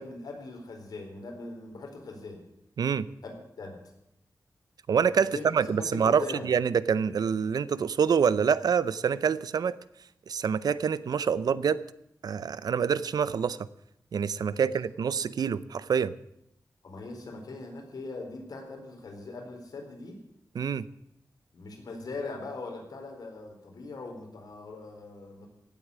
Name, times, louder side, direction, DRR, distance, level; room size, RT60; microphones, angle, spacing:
voice 1, 0.0-2.4 3.2-3.8 5.2-5.4 5.8-6.5 14.5-14.7 16.8-20.2 21.5-25.5, left 3 dB, 80° left, 2 dB, 4.2 m, -41 dB
voice 2, 4.9-9.8 10.3-11.8 12.2-13.7 14.1-16.2 20.5-20.9, right 7 dB, 80° right, 17 dB, 0.6 m, -26 dB
16.5 x 8.3 x 8.4 m, 0.78 s
wide cardioid pair, 135°, 7 cm